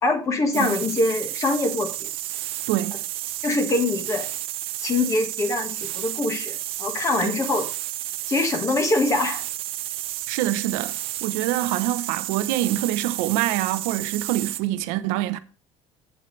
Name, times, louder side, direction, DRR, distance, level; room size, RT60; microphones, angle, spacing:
voice 1, 0.0-2.1 3.4-4.3 4.8-7.7 8.3-9.4, left 2 dB, 25° left, 1.7 m, -24 dB
sound 1, 0.5-14.7, right 15 dB, 50° right, 0.6 m, -32 dB
voice 2, 2.7-3.0 7.2-7.4 10.3-15.4, right 14 dB, 85° right, 0.9 m, -25 dB
12.0 x 8.3 x 3.3 m
cardioid pair, 160°, 12 cm